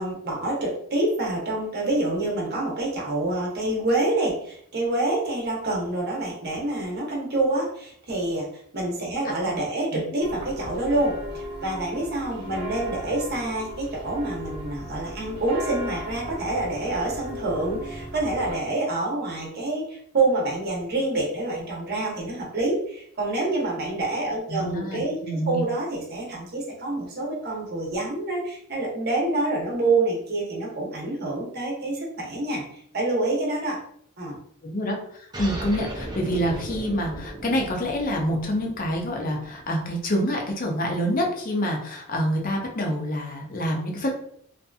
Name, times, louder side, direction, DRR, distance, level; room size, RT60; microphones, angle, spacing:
voice 1, 0.0-8.5 8.7-32.6 32.9-33.8 34.2-34.3, right 2 dB, 45° right, -3 dB, 0.8 m, -27 dB
sound 1, 10.2-18.6, left 1 dB, 75° right, 1.0 m, -37 dB
voice 2, 24.5-25.6 34.6-44.1, equal, 40° left, 1 dB, 0.6 m, -27 dB
sound 2, 35.3-40.4, right 1 dB, 20° right, 0.4 m, -37 dB
2.7 x 2.5 x 2.3 m, 0.65 s
head